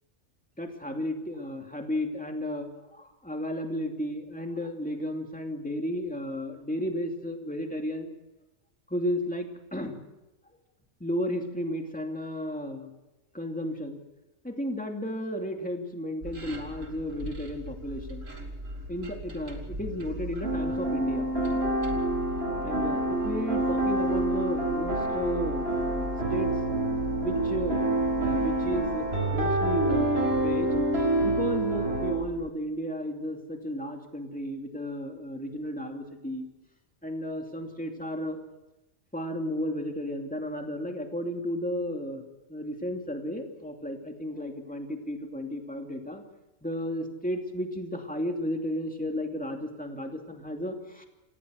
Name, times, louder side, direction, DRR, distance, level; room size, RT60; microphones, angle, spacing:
voice 1, 0.6-8.1 8.9-10.0 11.0-12.9 13.3-14.0 14.4-18.3 18.9-21.3 22.6-26.5 27.2-27.8 28.1-30.7 31.2-36.5 37.0-38.4 39.1-42.2 42.5-46.2 46.6-51.1, left 1 dB, 5° left, 3 dB, 2.6 m, -33 dB
sound 1, 16.2-32.5, equal, 70° right, 3.2 m, -40 dB
sound 2, 20.4-32.1, right 2 dB, 50° right, 5.6 m, -27 dB
28.0 x 18.0 x 6.5 m, 1.0 s
omnidirectional pair, 1.4 m